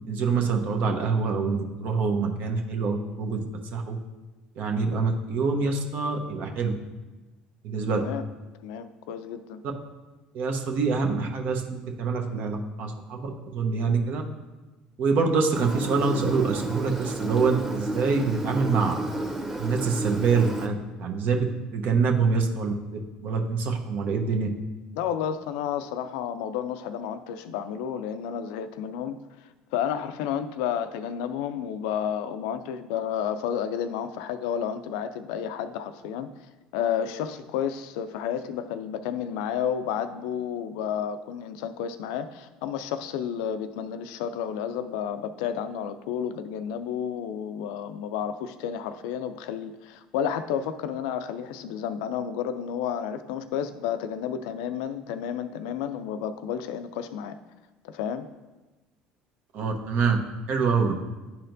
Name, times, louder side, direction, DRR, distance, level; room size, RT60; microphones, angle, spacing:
voice 1, 0.0-3.4 3.7-4.0 4.6-6.7 7.6-8.0 10.3-14.2 15.0-19.0 19.6-24.5 59.5-60.2 60.5-60.9, right 4 dB, 60° right, 3 dB, 0.9 m, -25 dB
voice 2, 8.6-9.6 24.9-29.2 29.7-36.3 36.7-57.4 57.8-58.3, left 8 dB, 75° left, 11 dB, 0.4 m, -31 dB
Engine, 15.5-20.7, right 2 dB, 15° right, 1.1 m, -32 dB
10.5 x 4.3 x 2.6 m, 1.2 s
hypercardioid pair, 70°, 3 cm